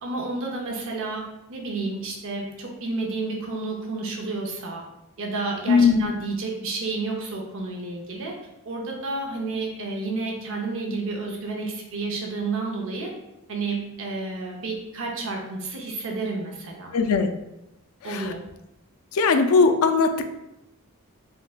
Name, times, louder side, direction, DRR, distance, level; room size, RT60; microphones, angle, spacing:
voice 1, 0.0-1.2 1.5-4.8 5.2-8.3 8.6-13.1 13.5-17.0 18.0-18.4, right 3 dB, 60° right, 0 dB, 0.6 m, -30 dB
voice 2, 5.7-6.1 16.9-17.3 18.0-18.3 19.1-20.2, left 4 dB, 75° left, 7 dB, 0.4 m, -19 dB
3.4 x 3.1 x 2.4 m, 0.89 s
head